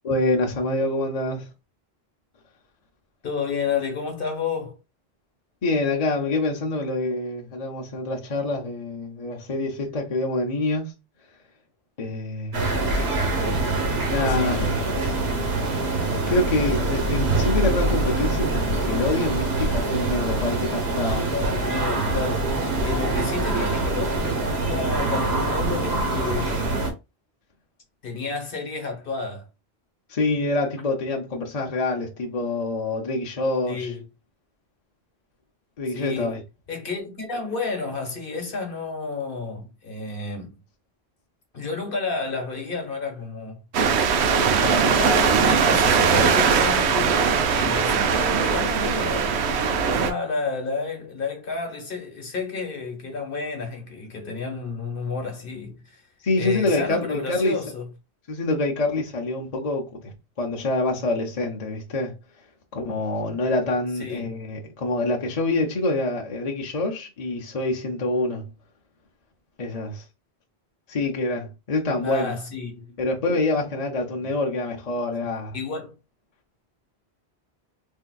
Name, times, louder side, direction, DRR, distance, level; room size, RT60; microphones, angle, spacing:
voice 1, 0.0-1.5 5.6-10.9 12.0-12.6 14.0-14.8 16.3-21.3 30.1-33.9 35.8-36.4 56.2-57.6 58.3-62.2 62.7-68.5 69.6-70.0 70.9-72.3 73.0-75.6, left 2 dB, 45° left, 0.7 m, -26 dB
voice 2, 3.2-4.8 14.1-15.0 21.3-26.8 28.0-29.5 33.7-34.0 35.9-36.4 36.7-40.6 41.5-43.6 44.4-49.7 50.0-56.0 56.4-57.9 64.0-64.4 72.0-73.0 74.1-74.3 75.5-75.9, left 4 dB, 60° left, 1.2 m, -31 dB
sound 1, 12.5-26.9, right 2 dB, 75° right, 1.2 m, -24 dB
sound 2, 43.7-50.1, right 6 dB, 90° right, 0.9 m, -20 dB
3.5 x 2.7 x 2.2 m
omnidirectional pair, 1.1 m